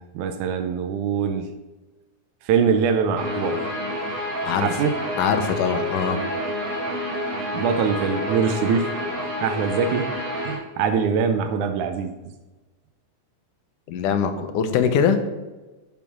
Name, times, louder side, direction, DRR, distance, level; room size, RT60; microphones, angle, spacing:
voice 1, 0.0-1.5 2.4-3.7 4.6-5.0 7.5-8.9 9.4-12.1, right 6 dB, 85° right, 7 dB, 2.1 m, -23 dB
Guitar, 3.2-10.5, left 1 dB, 30° right, 2.6 m, -28 dB
voice 2, 5.2-6.2 13.9-15.2, left 7 dB, 85° left, 8 dB, 2.5 m, -22 dB
7.0 x 6.6 x 7.2 m, 1.2 s
omnidirectional pair, 3.5 m